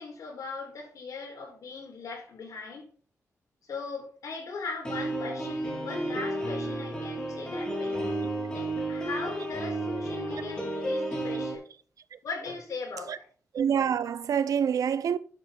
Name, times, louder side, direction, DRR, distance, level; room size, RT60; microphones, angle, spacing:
voice 1, 0.0-2.9 3.6-8.1 8.5-11.6 12.2-13.3, left 4 dB, 75° left, 4.7 m, -39 dB
sound 1, 4.8-11.5, right 1 dB, 15° left, 3.6 m, -32 dB
voice 2, 13.5-15.2, right 8 dB, 85° right, 0.7 m, -26 dB
11.0 x 7.6 x 3.9 m
wide cardioid pair, 150°, 6 cm